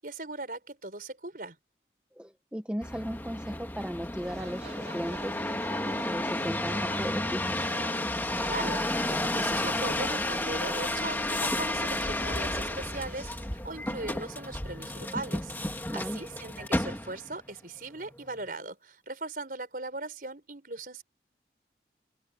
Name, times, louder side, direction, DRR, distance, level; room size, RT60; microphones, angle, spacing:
voice 1, 0.0-1.6 8.4-21.0, right 2 dB, 50° right, 5.2 m, -39 dB
voice 2, 2.2-5.3 5.8-7.6 15.9-16.2, equal, 5° right, 1.1 m, -36 dB
sound 1, 2.8-17.4 17.9-18.5, left 1 dB, 10° left, 1.8 m, -32 dB
sound 2, 4.2-13.5, right 3 dB, 70° right, 2.7 m, -47 dB
open air
head